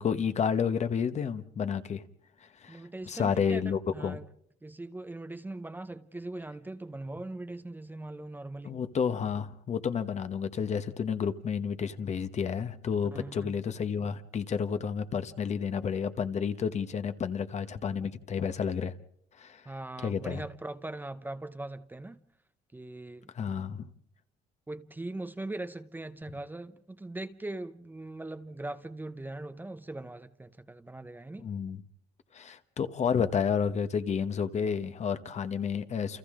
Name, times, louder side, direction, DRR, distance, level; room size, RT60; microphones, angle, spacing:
voice 1, 0.0-2.0 2.6-2.8 3.1-4.2 8.6-18.9 19.4-19.6 20.0-20.4 23.3-23.9 31.4-31.8 32.3-36.2, left 7 dB, 40° left, 1.2 m, -30 dB
voice 2, 2.7-4.3 4.6-8.8 13.1-13.5 19.7-22.2 22.7-23.3 24.7-31.5, right 2 dB, 10° right, 0.8 m, -40 dB
29.0 x 28.5 x 3.8 m
cardioid pair, 110°, 17 cm